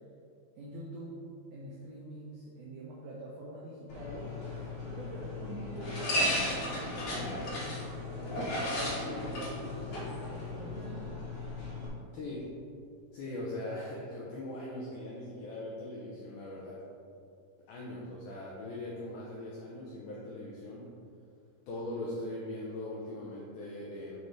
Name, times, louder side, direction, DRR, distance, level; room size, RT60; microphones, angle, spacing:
voice 1, 0.6-1.2 1.5-4.4 4.8-11.1, right 1 dB, 85° right, -4 dB, 1.7 m, -44 dB
sound 1, 3.9-11.9, left 1 dB, 55° left, 2.4 m, -35 dB
voice 2, 12.1-12.5 13.1-16.8 17.7-20.9 21.7-24.2, left 1 dB, 80° left, -5 dB, 1.8 m, -40 dB
6.8 x 5.9 x 3.2 m, 2.4 s
omnidirectional pair, 4.5 m